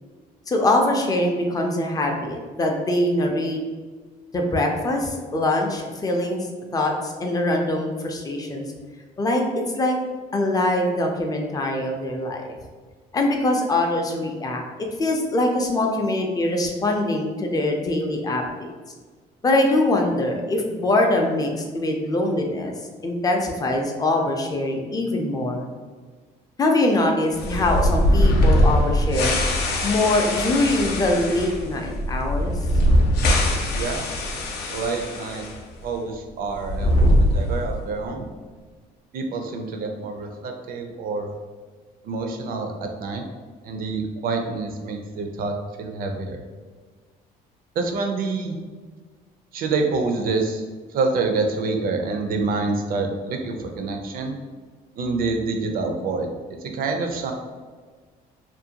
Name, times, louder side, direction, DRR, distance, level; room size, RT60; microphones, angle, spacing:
voice 1, 0.5-3.6 4.3-6.5 6.7-8.7 9.2-9.9 10.3-12.5 13.1-14.6 15.0-18.7 19.4-22.7 23.0-25.7 26.6-29.4 29.8-32.6, left 1 dB, 20° left, 2 dB, 0.4 m, -23 dB
sound 1, 27.4-35.6 35.8-35.9 36.5-37.9, left 1 dB, 70° left, 0.5 m, -21 dB
voice 2, 33.7-34.1 34.7-35.5 35.8-38.3 39.1-41.3 42.0-43.2 43.6-46.4 47.8-48.6 49.5-50.6 50.9-54.4 55.0-57.3, right 3 dB, 60° right, 4 dB, 0.4 m, -27 dB
2.5 x 2.1 x 2.7 m, 1.5 s
cardioid pair, 110°, 17 cm